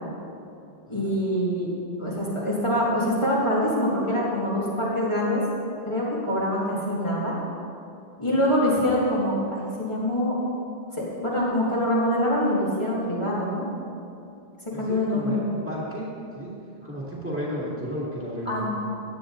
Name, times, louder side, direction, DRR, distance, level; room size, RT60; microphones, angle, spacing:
voice 1, 0.9-1.7 2.0-5.4 5.9-7.3 8.2-10.4 11.2-13.6 14.8-15.4 18.5-18.7, left 1 dB, 30° left, -8 dB, 2.2 m, -24 dB
voice 2, 14.7-16.1 16.3-16.6 16.8-18.7, equal, 10° right, -6 dB, 2.7 m, -33 dB
16.0 x 9.7 x 3.9 m, 2.6 s
omnidirectional pair, 1.0 m